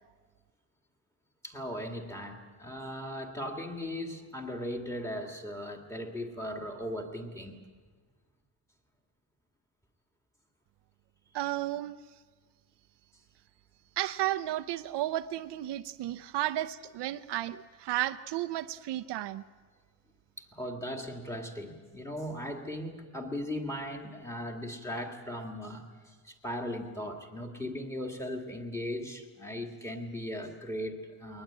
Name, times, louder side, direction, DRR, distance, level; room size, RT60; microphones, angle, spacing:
voice 1, 1.4-7.6 20.4-31.4, equal, 5° left, 3 dB, 2.0 m, -38 dB
voice 2, 11.3-12.0 14.0-19.4, right 14 dB, 65° right, 11 dB, 0.7 m, -33 dB
22.0 x 19.5 x 8.7 m, 1.5 s
cardioid pair, 180°, 44 cm